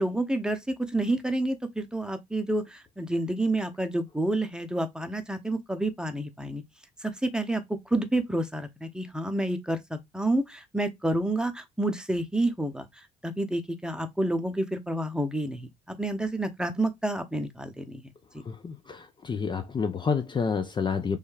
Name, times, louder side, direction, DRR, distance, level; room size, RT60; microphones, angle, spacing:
voice 1, 0.0-6.6 7.0-12.9 13.2-15.7 16.0-18.1, right 1 dB, 5° right, 0.8 m, -29 dB
voice 2, 18.5-21.2, left 5 dB, 25° left, 0.5 m, -29 dB
3.3 x 3.1 x 3.2 m
figure-of-eight pair, 50°, 18 cm